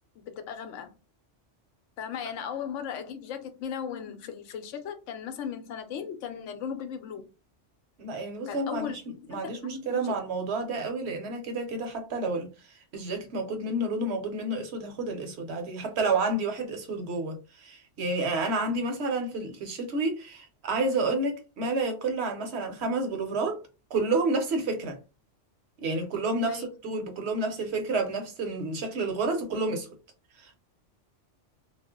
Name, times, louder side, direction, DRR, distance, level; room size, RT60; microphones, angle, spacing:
voice 1, 0.2-1.0 2.0-7.3 8.5-10.2 26.4-26.7, left 8 dB, 85° left, 0.9 m, -37 dB
voice 2, 8.0-9.0 9.3-12.5 12.9-23.6 23.9-25.0 25.8-29.9, right 3 dB, 65° right, 0.9 m, -30 dB
2.4 x 2.0 x 3.5 m
omnidirectional pair, 1.3 m